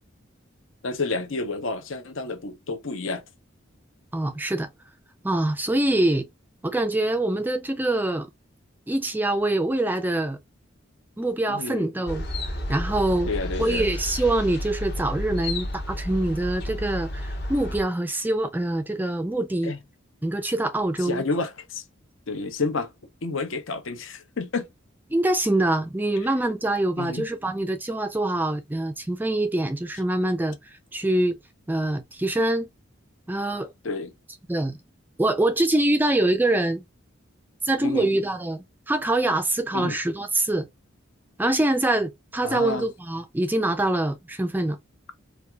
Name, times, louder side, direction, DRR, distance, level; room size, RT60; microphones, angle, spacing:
voice 1, 0.8-3.2 11.5-11.9 13.3-13.9 19.6-19.8 21.0-21.8 22.3-22.9 23.2-24.7 27.0-27.3 33.8-34.1 37.8-38.1 39.7-40.0 42.4-42.8, left 3 dB, 75° left, 0.8 m, -30 dB
voice 2, 4.1-4.7 5.2-6.3 6.6-8.3 8.9-10.4 11.2-13.3 13.6-19.7 20.2-21.2 25.1-30.6 30.9-31.4 31.7-32.7 33.3-33.7 34.5-34.8 35.2-36.8 37.6-40.7 41.4-44.8, right 1 dB, 10° right, 0.3 m, -24 dB
sound 1, 12.1-17.8, left 1 dB, 55° left, 1.0 m, -31 dB
4.3 x 2.4 x 2.3 m
head